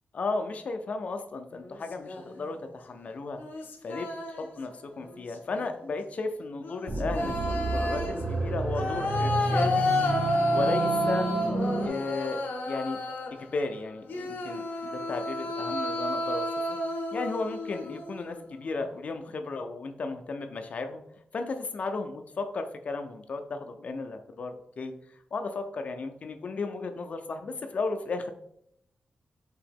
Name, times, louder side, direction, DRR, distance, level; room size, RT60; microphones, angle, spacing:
voice 1, 0.1-3.4 3.8-9.9 10.5-11.3 11.8-13.0 13.3-16.5 17.1-21.0 21.3-28.3, left 3 dB, 50° left, 6 dB, 0.4 m, -34 dB
sound 1, 1.6-2.4 3.4-4.6 5.0-5.6 6.6-13.5 14.1-18.4, left 1 dB, 90° left, 0.7 m, -31 dB
sound 2, 6.9-11.9, right 2 dB, 35° right, 0.6 m, -30 dB
4.8 x 2.8 x 3.5 m, 0.74 s
wide cardioid pair, 150°, 3 cm